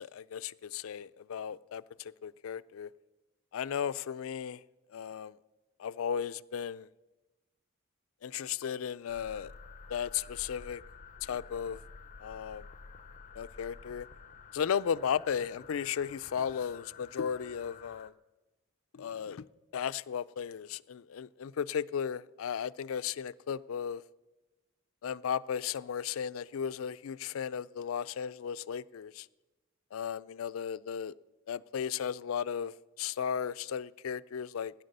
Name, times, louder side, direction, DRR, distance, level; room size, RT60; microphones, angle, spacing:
voice 1, 0.0-2.9 3.5-4.6 4.9-5.3 5.8-6.9 8.2-9.5 9.9-10.8 11.2-11.8 12.2-12.7 13.3-14.1 14.5-18.1 18.9-19.5 19.7-24.0 25.0-29.3 29.9-31.1 31.5-34.7, left 8 dB, 90° left, 0.4 m, -35 dB
sound 1, 9.1-18.1, left 4 dB, 35° left, 0.5 m, -51 dB
16.5 x 10.5 x 6.7 m
head